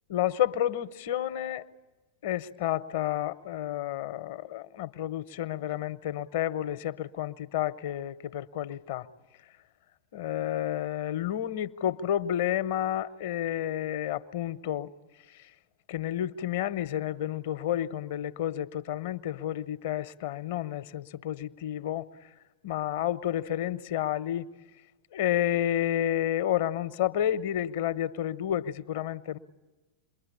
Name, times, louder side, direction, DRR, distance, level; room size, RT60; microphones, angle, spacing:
voice 1, 0.1-1.6 2.2-9.1 10.1-14.9 15.4-15.5 15.9-22.1 22.6-24.5 25.1-29.4, left 11 dB, 55° left, 0.9 m, -30 dB
28.0 x 22.0 x 8.5 m
figure-of-eight pair, 90°, 0 cm